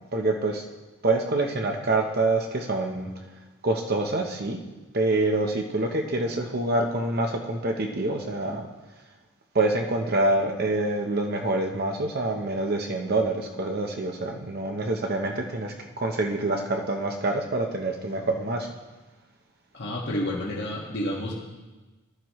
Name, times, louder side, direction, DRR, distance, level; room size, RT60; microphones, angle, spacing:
voice 1, 0.1-0.6 1.0-3.1 3.6-4.6 4.9-8.7 9.5-18.7, right 2 dB, 45° right, 2 dB, 1.0 m, -26 dB
voice 2, 19.7-21.3, left 1 dB, 50° left, -3 dB, 1.6 m, -30 dB
15.0 x 12.0 x 3.2 m, 1.2 s
head